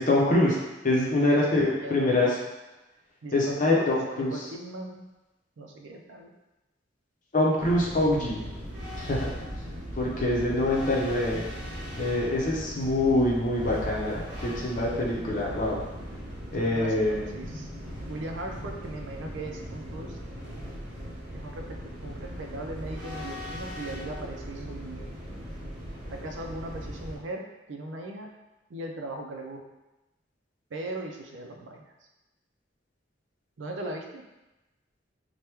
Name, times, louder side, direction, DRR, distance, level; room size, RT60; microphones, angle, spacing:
voice 1, 0.0-2.4 3.3-4.4 7.3-8.4 9.0-9.3 9.9-11.5 12.0-15.8 16.5-17.4, left 1 dB, 45° left, -3 dB, 0.7 m, -25 dB
voice 2, 1.6-2.4 3.2-3.9 4.2-5.0 5.6-6.3 16.5-17.7 18.1-20.2 21.3-21.6 22.0-25.2 26.1-28.3 28.7-29.6 30.7-31.9 33.6-34.2, right 2 dB, 80° right, 2 dB, 0.4 m, -38 dB
sound 1, 7.6-27.2, equal, 50° right, 0.8 m, -39 dB
2.9 x 2.1 x 3.4 m, 1.0 s
head